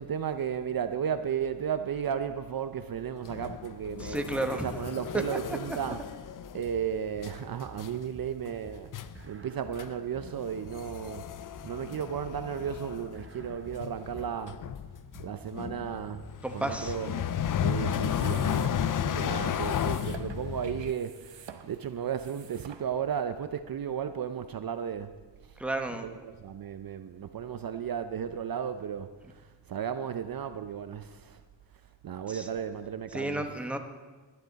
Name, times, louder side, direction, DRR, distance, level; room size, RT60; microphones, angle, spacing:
voice 1, 0.0-6.0 6.5-11.3 11.6-14.6 15.2-17.2 17.6-25.1 25.4-25.6 26.0-31.4 32.0-33.5, right 8 dB, 50° right, 0.6 m, -34 dB
sound 1, 3.3-6.8 7.2-7.5 7.8-8.1 8.5-8.6 8.9-9.2 9.8-9.9 10.2-20.9, left 9 dB, 45° left, 0.5 m, -34 dB
voice 2, 4.0-4.7 5.3-5.6 16.4-16.9 25.6-26.1 32.3-32.5 33.1-33.8, right 1 dB, 5° right, 1.1 m, -32 dB
sound 2, 6.7-16.7, right 1 dB, 30° right, 1.1 m, -51 dB
sound 3, 17.8-23.2, right 8 dB, 75° right, 1.0 m, -50 dB
19.5 x 10.5 x 4.1 m
cardioid pair, 100°, 45 cm